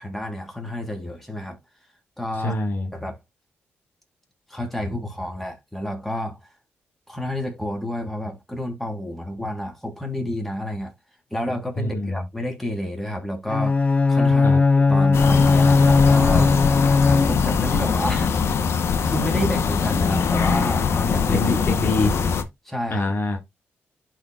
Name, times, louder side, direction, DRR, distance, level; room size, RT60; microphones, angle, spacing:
voice 1, 0.0-1.6 2.2-2.6 2.9-3.2 4.5-6.5 7.1-10.9 11.3-13.7 14.1-16.5 17.1-18.6 19.0-21.5 22.6-23.1, left 1 dB, 5° left, 3.1 m, -30 dB
voice 2, 2.4-2.9 11.8-12.2 14.4-14.6 21.3-22.1 22.9-23.4, left 2 dB, 55° left, 1.6 m, -24 dB
Bowed string instrument, 13.5-17.7, left 4 dB, 30° left, 0.4 m, -18 dB
sound 1, 15.1-22.4, left 6 dB, 70° left, 0.8 m, -22 dB
11.5 x 4.5 x 2.3 m
cardioid pair, 60°, 4 cm